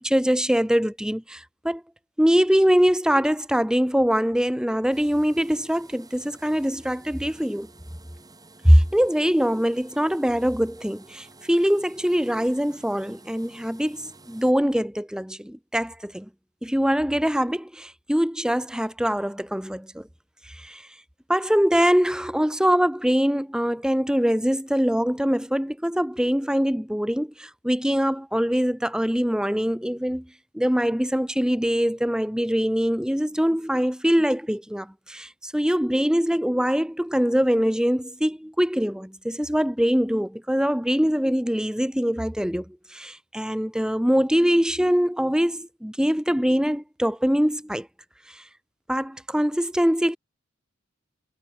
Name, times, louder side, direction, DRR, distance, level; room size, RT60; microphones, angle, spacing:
voice 1, 0.0-1.8 2.2-7.7 8.6-16.3 16.6-20.1 20.5-20.8 21.3-30.3 30.5-47.9 48.3-48.4 48.9-50.2, equal, 5° right, 1.2 m, -23 dB
sound 1, 4.9-14.5, right 2 dB, 20° right, 7.5 m, -51 dB
head